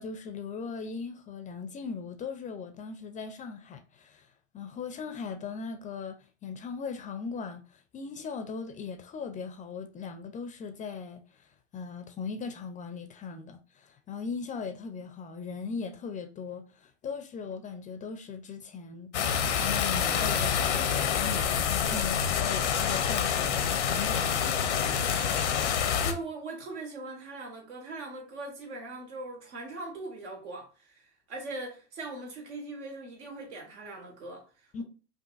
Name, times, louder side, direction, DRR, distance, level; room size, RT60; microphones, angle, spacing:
voice 1, 0.0-4.3 4.5-11.5 11.7-19.1 19.6-25.3 34.7-34.8, left 5 dB, 25° left, 0.4 m, -39 dB
sound 1, 19.1-26.1, left 8 dB, 90° left, 0.7 m, -27 dB
voice 2, 26.0-34.8, right 2 dB, 80° right, 1.5 m, -40 dB
5.2 x 2.5 x 2.4 m
hypercardioid pair, 95°, 34 cm